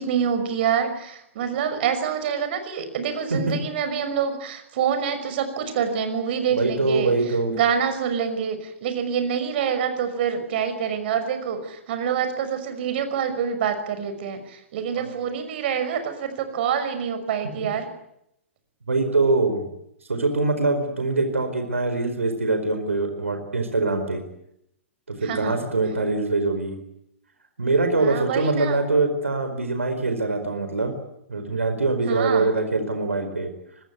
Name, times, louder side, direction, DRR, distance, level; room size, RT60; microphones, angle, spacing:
voice 1, 0.0-7.1 7.5-17.9 25.2-25.6 28.0-28.8 32.1-32.5, right 7 dB, 50° right, 9 dB, 6.0 m, -26 dB
voice 2, 6.6-7.6 14.9-15.1 18.9-19.7 20.1-24.2 25.1-26.8 27.6-30.9 31.3-33.5, right 3 dB, 80° right, 7 dB, 4.7 m, -23 dB
25.0 x 21.5 x 9.6 m, 0.78 s
figure-of-eight pair, 115°, 7 cm